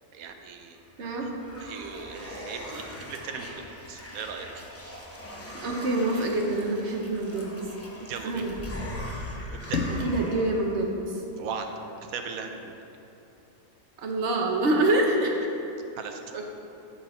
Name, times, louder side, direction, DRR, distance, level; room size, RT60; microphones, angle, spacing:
voice 1, 0.1-0.8 1.6-4.6 8.0-8.4 9.4-9.8 11.4-11.7 12.1-12.8 16.0-16.2, right 6 dB, 80° right, 5 dB, 1.1 m, -38 dB
sound 1, 0.8-10.8, left 1 dB, 20° left, 0.4 m, -41 dB
voice 2, 1.0-1.3 5.5-7.6 8.2-8.6 9.9-11.2 14.0-15.4 16.3-16.4, right 2 dB, 55° right, 1 dB, 1.0 m, -26 dB
sound 2, 9.7-12.6, left 2 dB, 65° left, 1.1 m, -35 dB
7.3 x 5.6 x 4.3 m, 2.8 s
omnidirectional pair, 1.5 m